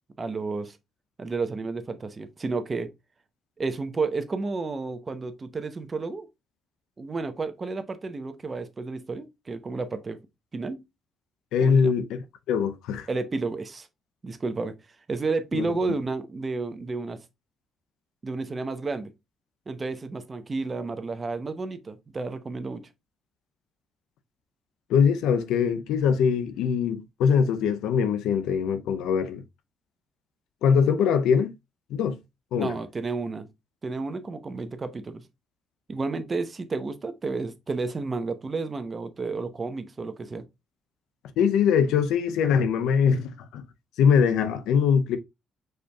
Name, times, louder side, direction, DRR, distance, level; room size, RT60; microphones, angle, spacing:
voice 1, 0.2-0.8 1.2-2.9 3.6-6.3 7.0-10.2 10.5-10.8 11.6-11.9 13.1-13.9 14.2-14.7 15.1-17.2 18.2-19.1 19.7-22.8 32.6-33.5 33.8-35.2 35.9-40.4, right 3 dB, 30° right, 0.8 m, -31 dB
voice 2, 11.5-13.1 15.5-15.6 24.9-29.4 30.6-31.5 31.9-32.2 32.5-32.7 41.4-43.6 44.0-45.2, left 6 dB, 90° left, 0.6 m, -22 dB
5.0 x 4.3 x 2.3 m
cardioid pair, 90°, 0 cm